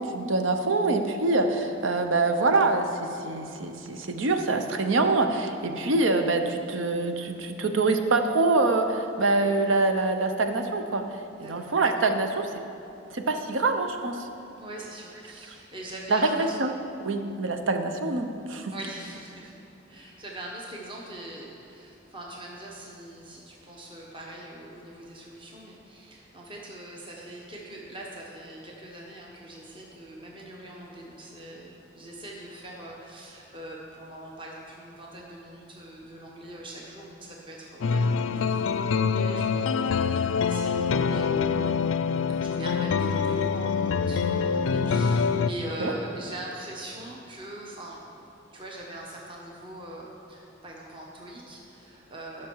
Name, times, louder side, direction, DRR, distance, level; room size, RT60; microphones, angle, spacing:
voice 1, 0.0-11.0 11.5-12.5 13.1-14.3 16.1-16.7 17.0-18.7 45.8-45.9, right 3 dB, 85° right, 6 dB, 0.8 m, -25 dB
voice 2, 11.4-11.7 14.6-16.6 18.7-19.5 19.9-41.7 42.4-52.5, right 1 dB, 25° right, -2 dB, 1.0 m, -42 dB
sound 1, 37.8-45.5, left 5 dB, 90° left, 0.4 m, -25 dB
15.0 x 6.0 x 4.6 m, 2.7 s
head